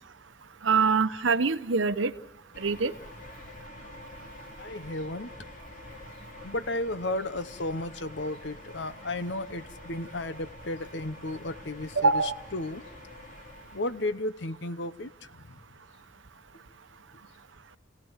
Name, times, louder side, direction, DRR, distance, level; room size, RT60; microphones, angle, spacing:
voice 1, 0.6-2.1 2.6-2.9 12.0-12.3, right 4 dB, 75° right, 12 dB, 0.9 m, -24 dB
sound 1, 2.5-14.1, left 1 dB, 40° left, 3.0 m, -47 dB
voice 2, 4.6-5.3 6.4-12.2 12.5-12.8 13.7-15.6, left 2 dB, 65° left, 12 dB, 1.0 m, -34 dB
29.0 x 17.5 x 7.3 m, 0.88 s
head